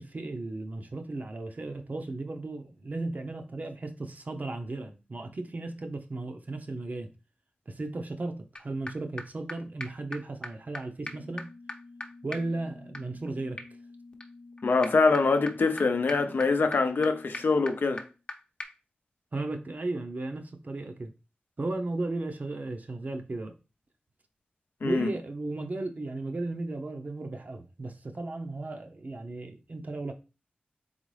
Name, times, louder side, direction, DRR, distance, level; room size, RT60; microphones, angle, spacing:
voice 1, 0.0-7.1 7.7-11.5 12.2-13.6 19.3-21.1 21.6-23.5 24.8-30.1, right 2 dB, 50° right, 0.7 m, -35 dB
sound 1, 8.6-8.7 8.9-9.0 9.2-9.3 9.5-9.6 9.8-9.9 10.1-10.2 10.4-10.5 10.7-10.8 11.1-18.3 18.6-18.7, left 2 dB, 30° left, 0.8 m, -42 dB
voice 2, 14.6-18.0 24.8-25.1, left 4 dB, 70° left, 0.5 m, -24 dB
4.0 x 3.6 x 3.2 m
cardioid pair, 55°, 3 cm